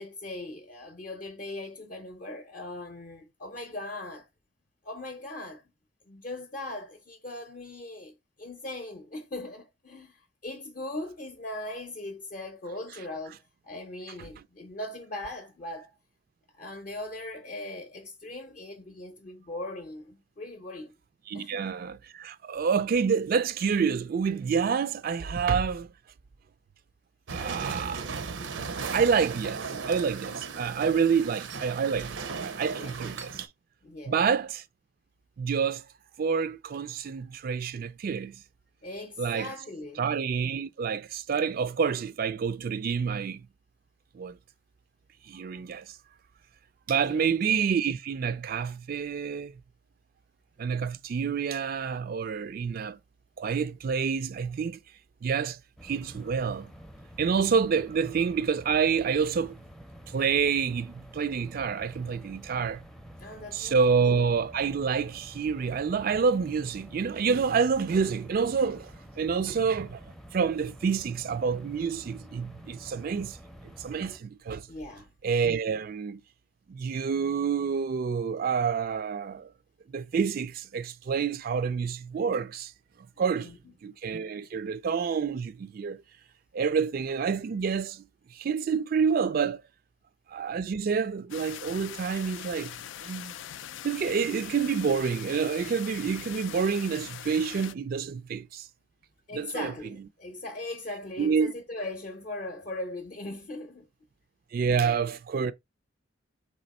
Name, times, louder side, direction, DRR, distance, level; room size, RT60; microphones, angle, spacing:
voice 1, 0.0-4.3 4.8-5.6 6.1-15.9 16.5-20.9 21.3-21.7 32.8-33.0 33.8-34.2 38.8-40.0 47.0-47.3 63.2-64.0 74.7-75.1 83.4-83.6 99.3-103.9 104.7-105.0, left 2 dB, 45° left, 0.6 m, -39 dB
voice 2, 21.3-25.9 27.3-28.2 28.9-32.1 32.4-33.5 34.1-34.6 35.4-35.8 36.2-38.4 39.2-39.5 40.0-43.5 44.1-44.4 45.3-45.9 46.9-49.5 50.6-53.0 53.4-54.8 55.2-56.7 57.2-59.6 60.1-62.8 63.5-68.9 69.2-73.4 73.8-74.7 75.2-76.2 76.7-79.5 79.9-82.7 83.2-83.5 83.8-86.0 86.5-88.0 88.3-89.6 90.3-92.7 93.0-93.3 93.8-98.7 99.3-99.7 101.2-101.5 104.5-105.5, right 6 dB, 50° right, 0.3 m, -28 dB
sound 1, 27.3-33.5, right 5 dB, 85° right, 0.7 m, -36 dB
sound 2, 55.8-74.2, equal, ahead, 0.5 m, -48 dB
sound 3, 91.3-97.7, left 10 dB, 85° left, 0.4 m, -42 dB
4.2 x 2.9 x 4.1 m
head